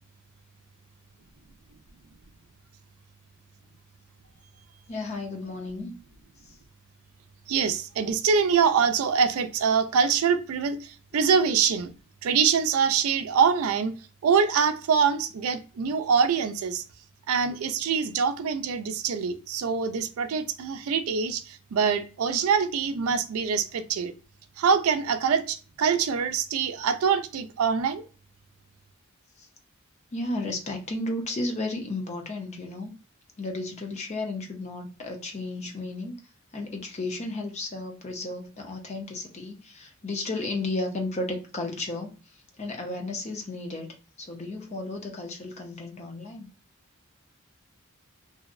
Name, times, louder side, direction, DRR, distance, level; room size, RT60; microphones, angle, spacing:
voice 1, 4.9-6.0 29.4-29.5 30.1-32.9 33.4-36.2 36.5-42.1 42.6-46.5, left 2 dB, 30° left, 0.5 m, -33 dB
voice 2, 7.5-10.8 11.1-11.9 12.2-13.9 14.2-16.8 17.3-24.1 24.6-28.0, right 6 dB, 85° right, 0.4 m, -24 dB
2.6 x 2.0 x 2.4 m
head